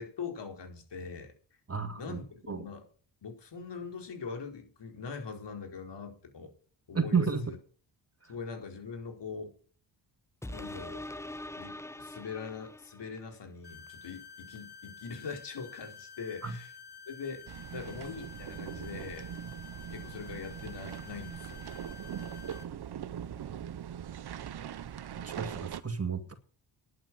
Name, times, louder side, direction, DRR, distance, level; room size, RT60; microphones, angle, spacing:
voice 1, 0.0-1.3 2.0-2.8 3.2-6.5 6.9-7.6 8.3-9.5 10.5-11.1 11.6-16.7 17.1-17.4 17.7-19.3 19.9-21.6, left 5 dB, 60° left, 4.6 m, -42 dB
voice 2, 1.7-2.2 2.5-2.7 6.9-7.4 16.4-16.6 25.2-26.3, right 5 dB, 30° right, 2.2 m, -31 dB
sound 1, 10.4-13.3 13.9-14.0, left 1 dB, 5° left, 0.9 m, -43 dB
sound 2, 13.6-22.6, left 6 dB, 20° left, 3.5 m, -50 dB
sound 3, 17.5-25.8, right 9 dB, 55° right, 1.0 m, -41 dB
11.0 x 8.9 x 7.7 m
supercardioid pair, 60°, 48 cm